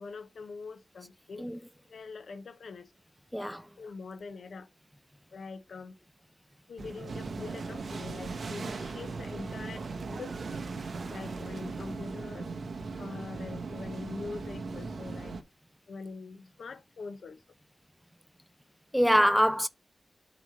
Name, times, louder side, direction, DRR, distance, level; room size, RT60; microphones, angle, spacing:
voice 1, 0.0-1.5 1.9-2.9 3.8-4.7 5.3-6.0 6.7-10.6 11.1-12.5 13.0-15.4 15.9-17.4, left 4 dB, 85° left, 1.1 m, -43 dB
voice 2, 3.3-3.7 18.9-19.7, equal, ahead, 0.6 m, -24 dB
sound 1, 6.8-11.9, right 4 dB, 70° right, 0.8 m, -45 dB
sound 2, 7.1-15.4, right 4 dB, 90° right, 1.5 m, -39 dB
8.7 x 3.2 x 6.1 m
cardioid pair, 60°, 0 cm